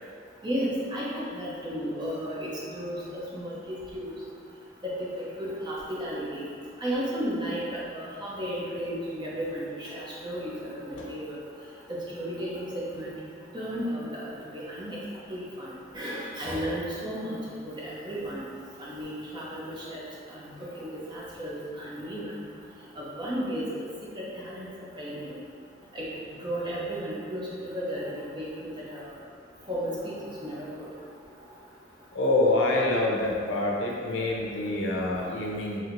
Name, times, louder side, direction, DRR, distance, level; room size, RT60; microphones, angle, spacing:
voice 1, 0.4-4.2 4.8-6.5 6.8-7.6 7.9-11.4 11.9-13.1 13.5-15.0 15.3-17.4 17.6-18.4 18.8-20.0 20.3-22.4 23.0-23.7 24.2-24.7 25.0-25.3 25.9-26.1 26.4-29.1 29.7-30.9, equal, 25° right, -7 dB, 0.7 m, -34 dB
voice 2, 32.1-35.8, left 2 dB, 85° left, -2 dB, 0.6 m, -26 dB
4.3 x 2.8 x 2.6 m, 2.3 s
head